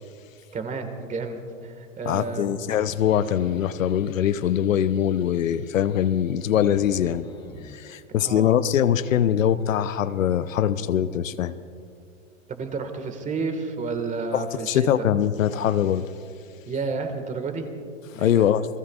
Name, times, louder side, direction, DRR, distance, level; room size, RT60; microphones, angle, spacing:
voice 1, 0.5-2.6 8.2-8.5 12.5-14.9 16.7-17.7 18.1-18.5, right 4 dB, 20° right, 7 dB, 1.8 m, -31 dB
voice 2, 2.1-7.3 7.6-11.6 14.3-16.0 18.1-18.6, left 10 dB, 75° left, 13 dB, 0.7 m, -22 dB
sound 1, 2.1-7.8, left 5 dB, 10° left, 0.7 m, -46 dB
29.0 x 19.0 x 2.4 m, 2.4 s
hypercardioid pair, 110°, 39 cm